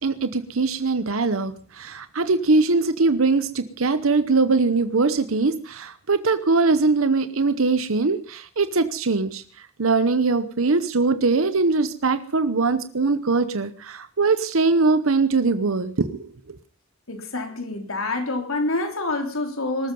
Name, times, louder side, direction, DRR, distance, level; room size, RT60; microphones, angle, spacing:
voice 1, 0.0-9.4 9.8-16.2, right 3 dB, 75° right, 11 dB, 0.9 m, -21 dB
voice 2, 17.1-19.9, left 2 dB, 80° left, 5 dB, 3.5 m, -27 dB
20.0 x 13.0 x 5.4 m, 0.42 s
head